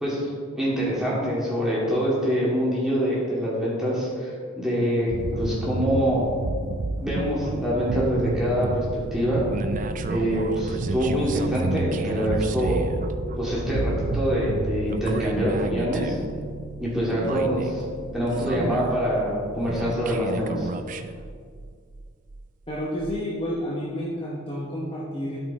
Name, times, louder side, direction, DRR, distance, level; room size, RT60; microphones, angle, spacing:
voice 1, 0.0-6.3 7.0-9.4 10.1-12.8 13.4-16.2 16.8-17.8 18.1-20.7, equal, ahead, -7 dB, 2.2 m, -25 dB
sound 1, 5.1-22.5 23.0-23.2, right 3 dB, 35° right, 0.4 m, -31 dB
voice 2, 22.7-25.4, equal, 25° left, -5 dB, 0.9 m, -30 dB
12.5 x 5.1 x 4.2 m, 2.1 s
head